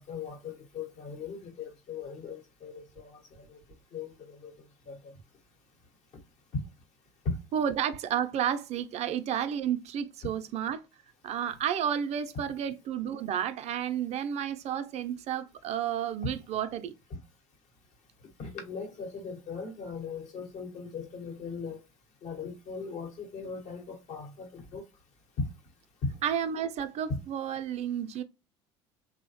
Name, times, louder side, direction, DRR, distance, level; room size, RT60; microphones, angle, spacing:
voice 1, 0.0-3.2 3.5-3.6 3.9-4.5 4.9-5.0 7.2-7.4 16.2-16.3 17.1-17.2 18.4-21.8 22.2-24.8 27.1-27.2, left 4 dB, 55° left, 1.0 m, -39 dB
voice 2, 7.5-10.8 11.2-16.9 26.2-28.2, right 9 dB, 50° right, 0.4 m, -31 dB
2.9 x 2.0 x 3.0 m
hypercardioid pair, 75°, 15 cm